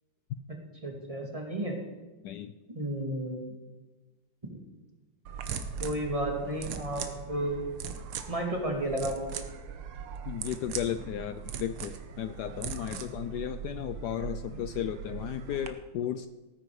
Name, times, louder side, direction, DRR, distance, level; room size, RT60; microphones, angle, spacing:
voice 1, 0.5-1.8 2.7-3.5 4.5-4.6 5.8-7.6 8.3-9.4, right 1 dB, 15° right, 0 dB, 2.1 m, -33 dB
voice 2, 2.2-2.5 10.3-16.3, left 10 dB, 90° left, 11 dB, 0.9 m, -34 dB
sound 1, 5.3-15.7, right 7 dB, 80° right, 1.8 m, -40 dB
18.0 x 9.4 x 4.8 m, 1.2 s
omnidirectional pair, 2.4 m